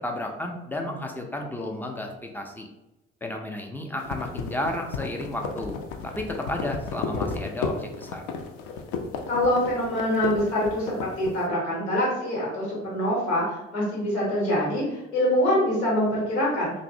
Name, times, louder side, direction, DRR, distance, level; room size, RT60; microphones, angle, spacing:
voice 1, 0.0-2.7 3.2-5.8 6.0-8.2, left 1 dB, 5° left, 2 dB, 0.4 m, -32 dB
sound 1, 4.0-11.4, left 5 dB, 60° left, 0.5 m, -33 dB
voice 2, 9.3-16.7, left 1 dB, 90° left, -6 dB, 0.9 m, -25 dB
2.6 x 2.0 x 2.6 m, 0.93 s
hypercardioid pair, 55°, 32 cm